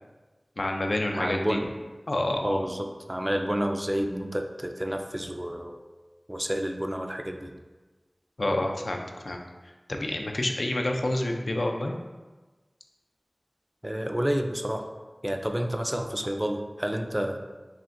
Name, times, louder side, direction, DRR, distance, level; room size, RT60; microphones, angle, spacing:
voice 1, 0.6-1.5 2.1-2.6 8.4-9.4 9.9-11.9, left 1 dB, 75° left, 2 dB, 0.4 m, -28 dB
voice 2, 1.1-1.7 2.4-5.8 6.3-7.5 13.8-14.9 15.2-17.4, equal, 15° right, 4 dB, 0.3 m, -29 dB
5.8 x 2.1 x 2.5 m, 1.2 s
wide cardioid pair, 40°, 0 cm